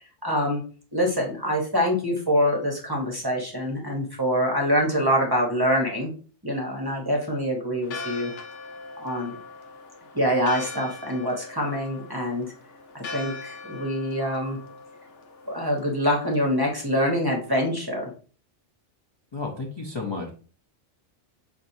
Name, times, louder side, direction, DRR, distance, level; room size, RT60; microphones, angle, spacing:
voice 1, 0.2-0.6 0.9-6.1 6.4-8.3 9.0-9.4 10.1-12.5 12.9-14.6 15.5-18.1, equal, 25° right, 0 dB, 0.7 m, -25 dB
Church bell, 7.8-16.7, left 4 dB, 90° left, 1.0 m, -41 dB
voice 2, 19.3-20.3, left 3 dB, 30° left, -1 dB, 0.5 m, -32 dB
5.7 x 2.5 x 2.6 m, 0.39 s
omnidirectional pair, 1.2 m